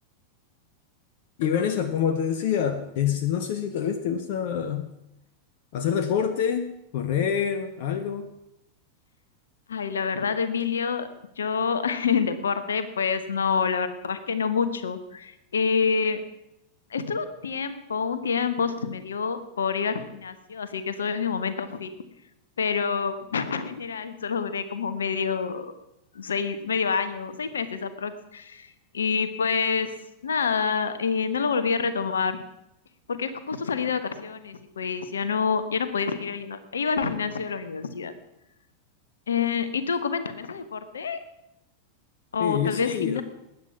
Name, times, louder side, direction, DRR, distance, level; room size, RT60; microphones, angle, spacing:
voice 1, 1.4-4.9 5.7-8.3 42.4-43.2, left 8 dB, 50° left, 9 dB, 1.0 m, -26 dB
voice 2, 9.7-11.1 11.4-16.2 16.9-21.9 22.6-25.7 26.1-30.0 30.2-32.4 33.1-38.1 39.3-41.2 42.3-43.2, left 5 dB, 70° left, 12 dB, 1.3 m, -27 dB
20.0 x 9.6 x 5.9 m, 0.85 s
figure-of-eight pair, 90°, 0 cm